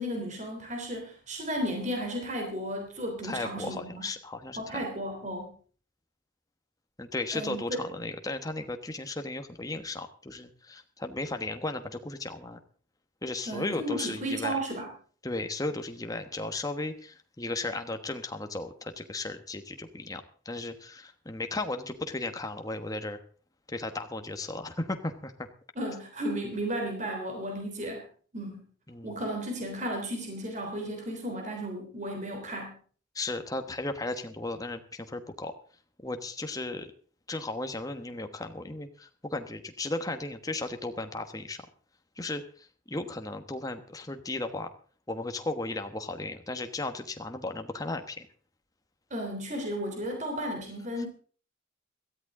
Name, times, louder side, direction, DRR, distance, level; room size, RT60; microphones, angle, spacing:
voice 1, 0.0-4.0 4.6-5.6 7.3-7.8 13.5-14.9 25.8-28.0 28.3-28.6 29.0-32.8 49.1-51.1, right 1 dB, 40° right, 2 dB, 3.5 m, -34 dB
voice 2, 3.2-4.8 7.0-12.6 13.2-14.6 15.2-23.2 23.7-25.5 28.9-29.2 33.1-35.5 36.0-36.9 37.3-41.6 42.2-44.7 45.1-48.3, left 2 dB, 20° left, 6 dB, 1.2 m, -35 dB
17.0 x 13.5 x 3.8 m, 0.42 s
head